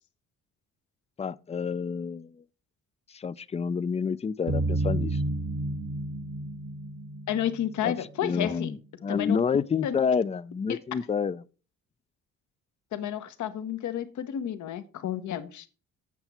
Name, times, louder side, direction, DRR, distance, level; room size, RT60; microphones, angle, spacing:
voice 1, 1.2-2.4 3.1-5.2 7.8-7.9 8.2-11.4, left 6 dB, 20° left, 0.4 m, -29 dB
sound 1, 4.5-8.2, right 2 dB, 85° right, 1.1 m, -31 dB
voice 2, 7.3-8.7 9.1-9.4 9.8-10.0 10.7-10.8 12.9-15.7, left 10 dB, 70° left, 1.1 m, -31 dB
8.2 x 6.8 x 4.3 m
cardioid pair, 90°, 30 cm